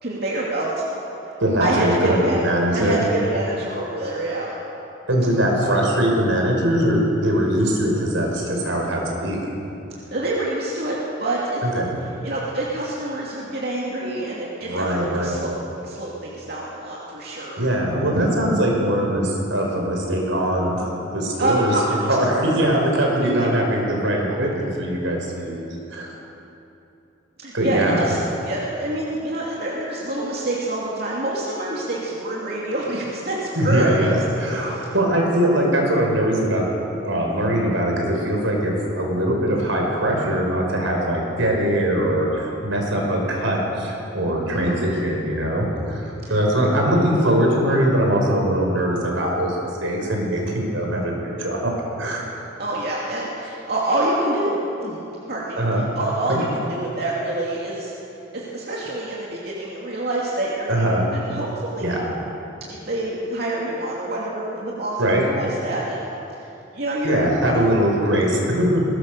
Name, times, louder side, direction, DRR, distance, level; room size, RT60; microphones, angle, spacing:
voice 1, 0.0-0.7 1.6-2.4 2.7-4.5 10.1-11.6 12.2-17.7 21.4-22.4 23.2-23.5 27.4-28.2 28.4-34.2 34.5-34.9 44.5-44.9 46.2-46.3 52.2-52.3 52.6-57.9 58.3-62.0 62.7-66.1 66.7-67.6, right 1 dB, 55° right, -5 dB, 2.9 m, -26 dB
voice 2, 1.4-3.0 5.1-9.5 11.6-12.0 14.6-15.4 17.6-21.8 22.1-26.1 27.5-28.1 33.5-36.6 37.0-51.7 52.0-52.2 55.6-55.8 56.3-56.4 60.7-61.1 61.8-62.1 65.0-65.2 67.0-68.8, right 1 dB, 85° right, 0 dB, 5.4 m, -21 dB
21.5 x 19.0 x 6.9 m, 2.8 s
head